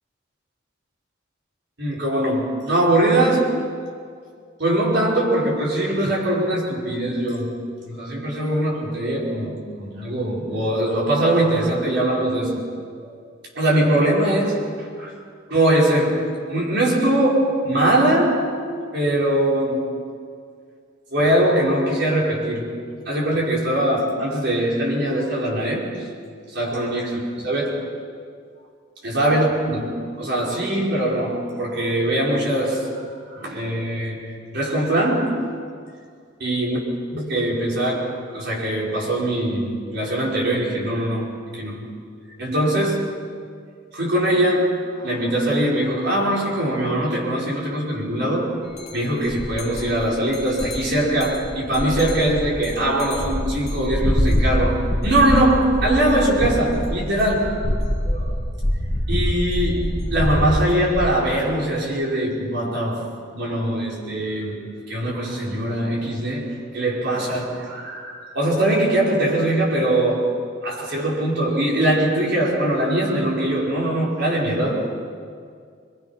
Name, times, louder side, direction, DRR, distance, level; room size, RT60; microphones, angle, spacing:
voice 1, 1.8-3.6 4.6-7.5 7.8-12.6 13.0-13.2 13.5-15.1 15.5-16.2 16.5-18.5 18.9-19.9 21.1-22.7 23.1-25.9 26.5-27.9 29.0-34.3 34.5-35.4 36.4-36.8 37.1-41.8 42.4-43.1 43.9-48.6 48.9-57.6 58.0-58.4 59.1-63.1 63.3-64.6 64.9-70.3 70.6-74.9, right 1 dB, 55° right, -3 dB, 5.2 m, -22 dB
sound 1, 48.8-48.9 49.2-61.1, equal, 35° left, 2.1 m, -25 dB
24.5 x 22.5 x 5.9 m, 2.2 s
head